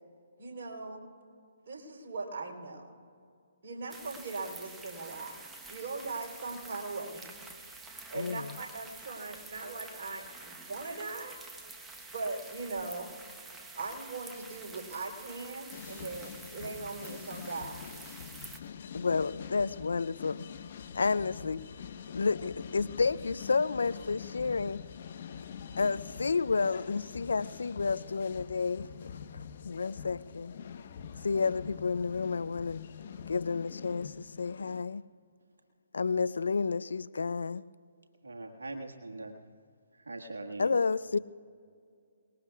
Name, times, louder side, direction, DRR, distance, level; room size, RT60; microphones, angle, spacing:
voice 1, 0.4-1.1 1.7-2.9 3.6-5.3 5.7-7.4 8.1-11.4 12.0-13.1 13.8-17.8, right 3 dB, 55° right, 3.8 m, -40 dB
sound 1, 3.9-18.6, right 3 dB, 10° right, 1.1 m, -48 dB
voice 2, 8.1-8.6 18.9-20.4 20.9-21.6 22.1-24.8 25.8-29.1 29.7-30.5 31.2-32.8 33.3-35.0 35.9-37.6 40.6-41.2, left 4 dB, 75° left, 0.5 m, -30 dB
sound 2, 15.7-34.8, left 7 dB, 50° left, 1.1 m, -45 dB
voice 3, 38.2-39.4 39.9-40.8, right 2 dB, 80° right, 1.6 m, -42 dB
28.5 x 20.0 x 2.4 m
figure-of-eight pair, 140°, 0 cm